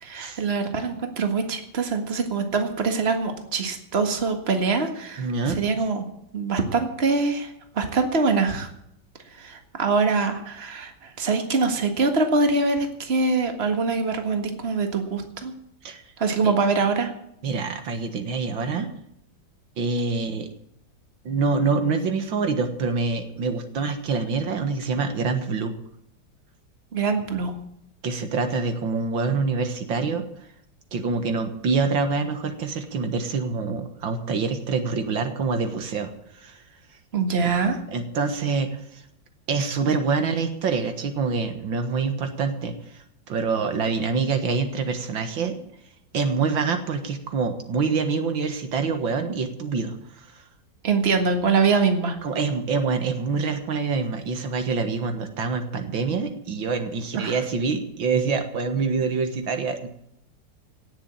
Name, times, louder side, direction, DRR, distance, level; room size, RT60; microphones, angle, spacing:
voice 1, 0.0-5.3 5.6-6.0 6.3-8.7 9.3-15.5 16.2-17.1 26.9-27.5 37.1-37.8 50.8-52.2 57.1-57.4, right 4 dB, 35° right, 5 dB, 1.9 m, -24 dB
voice 2, 5.2-5.7 15.8-16.0 16.4-16.5 17.4-19.0 19.8-20.5 21.3-25.7 28.0-30.3 30.9-36.6 37.9-39.0 39.5-45.6 46.1-50.4 52.2-59.9, right 4 dB, 80° right, 7 dB, 2.3 m, -26 dB
17.5 x 7.3 x 8.8 m, 0.75 s
omnidirectional pair, 2.1 m